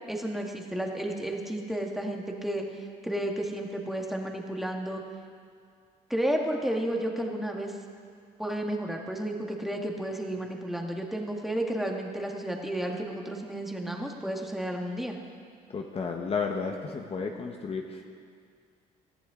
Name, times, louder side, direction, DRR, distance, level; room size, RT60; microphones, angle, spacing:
voice 1, 0.0-5.0 6.1-7.7 8.4-15.2, right 1 dB, ahead, 1 dB, 1.7 m, -32 dB
voice 2, 15.7-18.0, left 5 dB, 35° left, 2 dB, 1.1 m, -32 dB
19.5 x 14.0 x 3.8 m, 2.2 s
cardioid pair, 110°, 17 cm